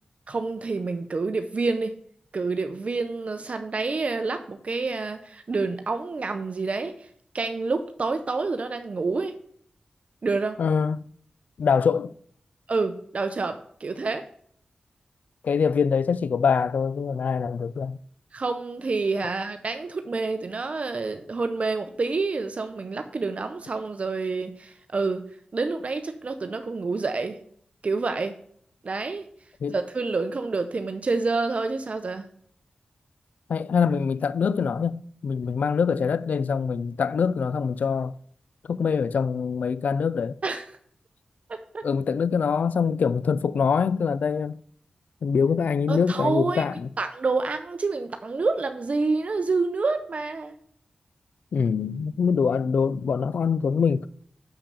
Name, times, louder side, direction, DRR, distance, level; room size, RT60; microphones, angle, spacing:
voice 1, 0.3-1.9 2.3-7.1 7.3-9.3 10.2-10.6 12.7-14.2 18.3-25.2 25.5-27.4 27.8-28.3 28.8-29.3 29.7-32.2 40.4-40.6 41.5-41.8 45.9-46.6 47.0-50.5, right 3 dB, 55° right, 0.7 m, -28 dB
voice 2, 10.6-11.0 11.6-12.1 15.4-18.0 29.6-29.7 33.5-38.1 38.7-40.4 41.8-44.6 45.2-46.7 51.5-54.1, left 6 dB, 85° left, 0.3 m, -24 dB
6.7 x 5.8 x 6.7 m
wide cardioid pair, 75°, 3 cm